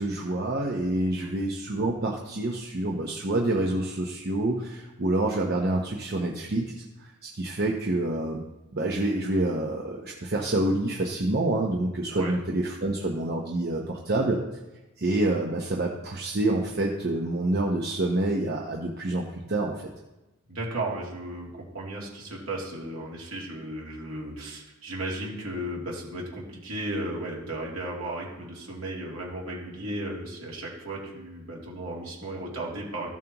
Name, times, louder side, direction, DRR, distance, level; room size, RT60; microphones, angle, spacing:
voice 1, 0.0-8.4 8.7-14.4 15.0-19.9, right 2 dB, 50° right, 0 dB, 0.8 m, -27 dB
voice 2, 20.5-21.5 21.7-33.1, right 1 dB, 70° right, -4 dB, 2.8 m, -35 dB
14.5 x 7.2 x 3.0 m, 1.0 s
head